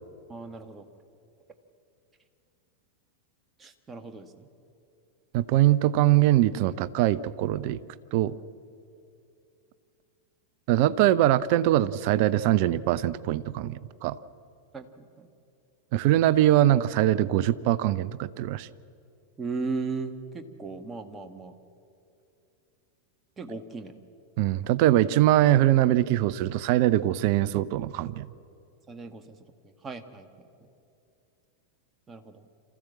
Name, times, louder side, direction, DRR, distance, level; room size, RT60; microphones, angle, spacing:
voice 1, 0.3-0.9 3.6-4.5 14.7-15.3 19.4-21.5 23.4-23.9 28.9-29.4 29.8-30.3 32.1-32.4, right 4 dB, 15° right, 6 dB, 1.5 m, -36 dB
voice 2, 5.3-7.8 8.1-8.3 10.7-14.2 15.9-18.7 24.4-28.3, right 13 dB, 45° right, 17 dB, 0.6 m, -22 dB
26.5 x 14.5 x 7.6 m, 2.6 s
figure-of-eight pair, 90°, 0 cm